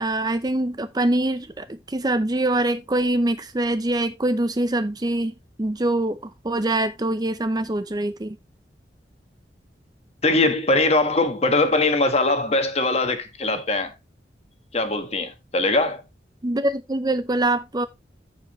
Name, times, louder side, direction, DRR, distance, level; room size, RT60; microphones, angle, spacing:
voice 1, 0.0-6.2 6.4-8.4 16.4-17.9, right 1 dB, 20° right, 0.6 m, -24 dB
voice 2, 10.2-13.9 14.7-16.0, left 2 dB, 35° left, 1.4 m, -21 dB
14.0 x 4.9 x 3.1 m
head